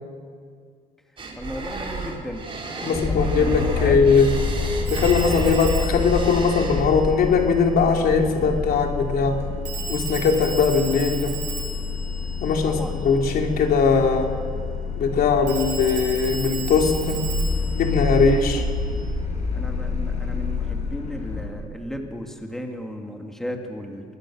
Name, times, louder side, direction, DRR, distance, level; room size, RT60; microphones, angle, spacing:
sound 1, 1.2-6.8, right 3 dB, 30° right, 4.4 m, -33 dB
voice 1, 1.3-2.5 2.8-4.1 12.6-13.1 18.6-18.7 19.5-24.0, equal, ahead, 2 dB, 2.5 m, -35 dB
voice 2, 2.8-4.3 4.9-9.4 9.9-11.4 12.4-14.3 15.0-17.2 17.7-18.6, left 5 dB, 65° left, 2 dB, 3.1 m, -20 dB
sound 2, 2.9-21.4, left 4 dB, 45° left, 7.0 m, -28 dB
Telephone, 4.8-7.5 9.6-13.3 15.5-18.9, right 4 dB, 55° right, 7.8 m, -36 dB
25.0 x 20.5 x 6.4 m, 2.1 s
cardioid pair, 110°, 17 cm